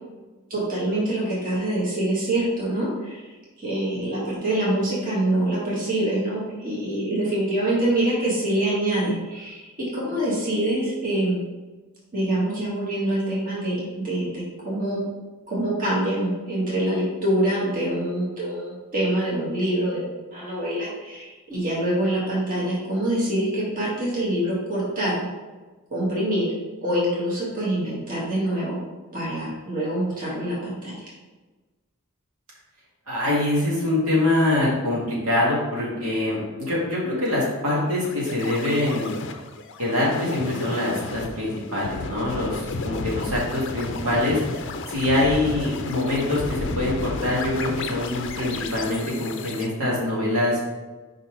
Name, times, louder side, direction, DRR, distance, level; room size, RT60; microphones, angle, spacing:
voice 1, 0.5-3.2 3.6-11.4 12.1-15.0 15.5-25.2 25.9-26.5 26.8-28.8 29.1-31.1, right 1 dB, 40° right, -6 dB, 1.7 m, -25 dB
voice 2, 33.1-39.1 39.8-44.4 44.9-50.6, left 1 dB, 80° right, -5 dB, 2.0 m, -24 dB
sound 1, 37.9-49.7, left 3 dB, 55° left, 0.5 m, -33 dB
5.0 x 4.3 x 4.8 m, 1.2 s
head